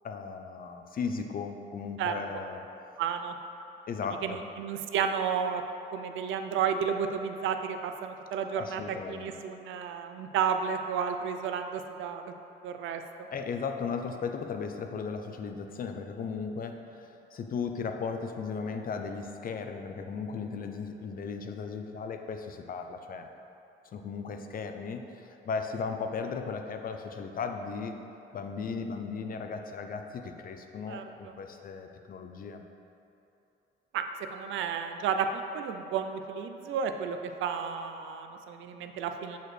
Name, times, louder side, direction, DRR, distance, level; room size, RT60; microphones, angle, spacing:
voice 1, 0.0-2.6 3.9-4.4 8.5-9.3 13.3-23.3 23.9-28.0 28.3-32.6, left 5 dB, 45° left, 5 dB, 0.5 m, -36 dB
voice 2, 3.0-3.3 4.2-5.6 5.9-8.8 9.1-12.3 12.6-13.0 30.9-31.3 33.9-34.0 34.3-39.4, right 7 dB, 80° right, 7 dB, 0.4 m, -32 dB
6.5 x 4.8 x 3.2 m, 2.8 s
cardioid pair, 90°, 20 cm